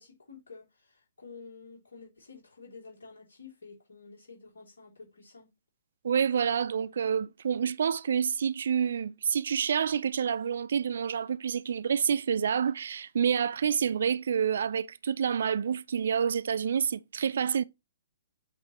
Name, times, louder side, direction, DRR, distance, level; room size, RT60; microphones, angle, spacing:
voice 1, 0.0-5.5, left 4 dB, 65° left, 3.7 m, -50 dB
voice 2, 6.0-17.6, right 7 dB, 60° right, 0.3 m, -28 dB
8.3 x 3.3 x 4.2 m
figure-of-eight pair, 120°, 0 cm